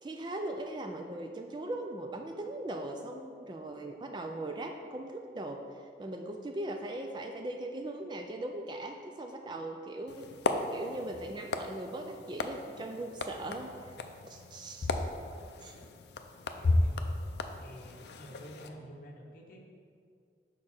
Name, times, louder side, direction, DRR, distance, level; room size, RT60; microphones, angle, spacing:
voice 1, 0.0-10.3 10.7-14.0 14.2-14.9 15.6-15.8, right 1 dB, 25° right, 4 dB, 0.3 m, -39 dB
sound 1, 10.1-18.7, left 2 dB, 70° left, 0.4 m, -35 dB
voice 2, 16.6-17.2 17.6-19.6, equal, 50° left, 0 dB, 0.9 m, -49 dB
6.4 x 4.8 x 4.4 m, 2.3 s
head